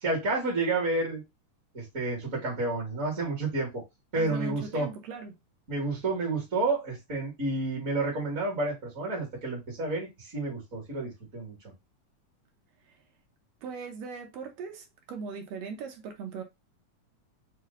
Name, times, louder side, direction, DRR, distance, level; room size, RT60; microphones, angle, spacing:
voice 1, 0.0-1.2 1.7-3.8 4.1-4.9 5.7-11.6, right 2 dB, 35° right, 1.3 m, -30 dB
voice 2, 4.2-5.4 13.6-16.4, right 5 dB, 70° right, 1.6 m, -39 dB
5.8 x 2.3 x 3.7 m
omnidirectional pair, 3.6 m